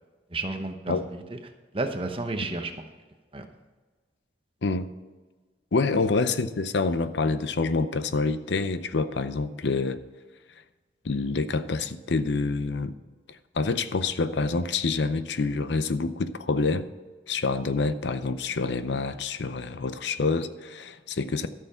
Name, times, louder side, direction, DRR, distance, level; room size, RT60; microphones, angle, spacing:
voice 1, 0.3-1.2 1.7-2.8 3.3-3.5, right 2 dB, 30° right, 6 dB, 0.9 m, -31 dB
voice 2, 5.7-10.0 11.0-12.9 13.3-16.9 17.3-21.5, left 3 dB, 70° left, 12 dB, 0.6 m, -27 dB
13.5 x 6.7 x 5.7 m, 1.4 s
head